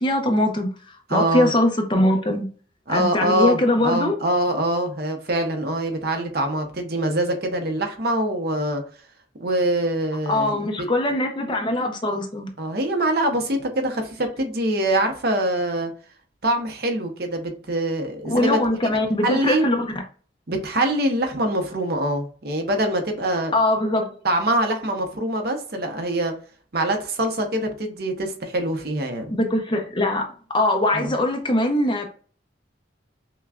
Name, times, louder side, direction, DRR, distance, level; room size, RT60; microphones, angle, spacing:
voice 1, 0.0-2.5 2.9-4.1 10.3-12.5 18.2-19.9 23.5-24.1 29.3-32.1, left 1 dB, 25° left, 0.6 m, -22 dB
voice 2, 1.1-1.5 2.9-8.8 9.4-10.7 12.6-15.9 16.4-19.0 19.2-19.6 20.5-23.5 24.2-26.3 26.7-29.3 30.9-31.1, right 1 dB, 55° right, 0.8 m, -24 dB
5.8 x 2.3 x 2.4 m
head